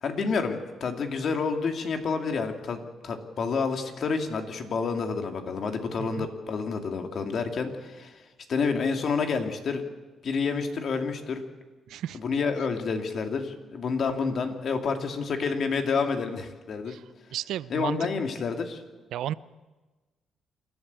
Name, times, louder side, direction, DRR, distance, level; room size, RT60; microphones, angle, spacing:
voice 1, 0.0-8.2 8.5-9.8 10.2-11.4 12.1-16.9 17.7-18.8, left 5 dB, 55° left, 5 dB, 2.6 m, -29 dB
voice 2, 11.9-12.2 16.9-17.0 17.3-18.0 19.1-19.3, right 11 dB, 80° right, 18 dB, 0.5 m, -33 dB
27.5 x 12.5 x 8.3 m, 1.2 s
cardioid pair, 90°, 0 cm